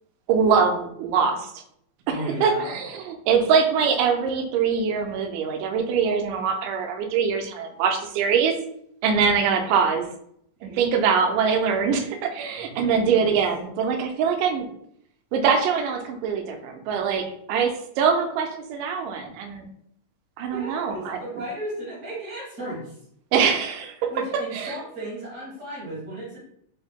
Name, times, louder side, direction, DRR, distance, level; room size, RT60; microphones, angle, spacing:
voice 1, 0.3-1.5 2.4-8.5 9.0-10.1 10.6-14.7 15.3-19.7 20.4-21.2 23.3-24.1 24.5-24.8, right 6 dB, 80° right, 4 dB, 2.0 m, -23 dB
voice 2, 2.1-2.8 10.6-10.7 12.7-13.3 20.5-23.0 24.1-26.4, right 1 dB, 55° right, -7 dB, 0.9 m, -35 dB
5.4 x 2.1 x 3.5 m, 0.70 s
omnidirectional pair, 3.9 m